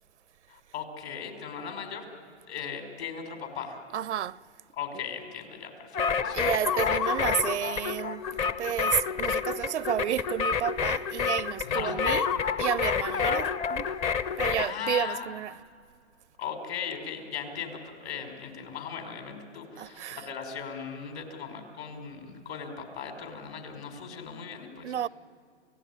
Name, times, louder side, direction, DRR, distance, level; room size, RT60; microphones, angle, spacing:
voice 1, 0.5-2.0 2.5-3.8 4.8-6.5 11.6-12.2 14.6-15.3 16.4-24.9, left 7 dB, 65° left, 5.1 m, -38 dB
voice 2, 3.9-4.4 4.9-5.0 6.3-8.3 8.6-12.3 12.6-13.9 14.4-15.5 19.8-20.2 24.8-25.1, right 10 dB, 80° right, 0.6 m, -31 dB
sound 1, 5.9-14.7, left 6 dB, 20° left, 0.5 m, -29 dB
28.5 x 17.0 x 9.9 m
hypercardioid pair, 130°, 34 cm